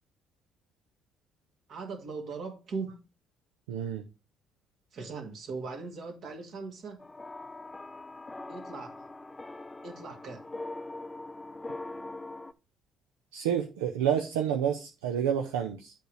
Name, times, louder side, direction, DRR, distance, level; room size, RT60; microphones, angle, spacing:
voice 1, 1.7-3.0 4.9-7.0 8.5-9.1 9.8-10.5, right 4 dB, 60° right, 2.1 m, -39 dB
voice 2, 3.7-4.0 13.3-15.9, right 9 dB, 85° right, 0.6 m, -29 dB
sound 1, 7.0-12.5, left 2 dB, 20° left, 0.6 m, -42 dB
7.8 x 3.5 x 6.3 m
hypercardioid pair, 55°, 0 cm